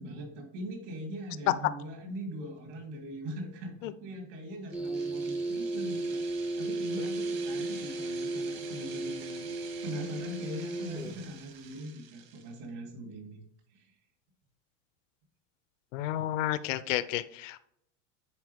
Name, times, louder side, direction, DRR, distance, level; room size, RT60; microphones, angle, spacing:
voice 1, 0.0-9.5 9.8-13.4 13.7-13.9, equal, 65° right, 1 dB, 3.1 m, -41 dB
sound 1, 4.7-11.2, right 2 dB, 5° right, 0.5 m, -35 dB
sound 2, 4.7-12.6, right 9 dB, 50° right, 1.5 m, -49 dB
voice 2, 15.9-17.6, left 14 dB, 80° left, 14 dB, 0.7 m, -32 dB
9.5 x 4.7 x 3.5 m, 0.72 s
supercardioid pair, 165°, 37 cm